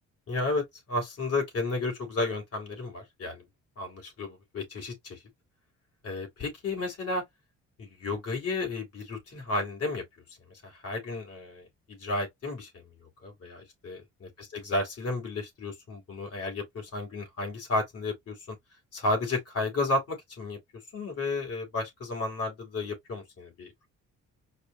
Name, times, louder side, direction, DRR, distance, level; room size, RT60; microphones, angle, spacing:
voice 1, 0.3-3.4 3.8-5.2 6.0-7.2 7.8-10.0 10.5-18.6 18.9-20.6 20.9-23.7, left 2 dB, 50° left, 2.9 m, -33 dB
4.8 x 2.1 x 3.9 m
cardioid pair, 90°, 30 cm